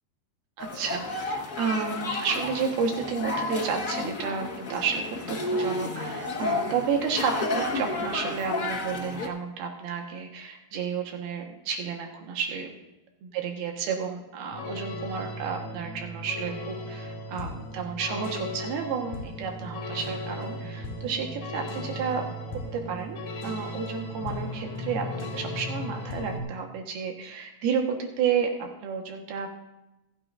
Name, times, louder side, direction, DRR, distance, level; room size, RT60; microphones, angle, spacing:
sound 1, 0.6-9.3, left 2 dB, 80° left, 0.7 m, -31 dB
voice 1, 0.6-12.7 13.2-29.5, right 6 dB, 85° right, 2 dB, 3.3 m, -31 dB
sound 2, 14.5-26.4, left 1 dB, 55° left, 3.6 m, -36 dB
26.0 x 8.8 x 2.6 m, 0.95 s
omnidirectional pair, 4.3 m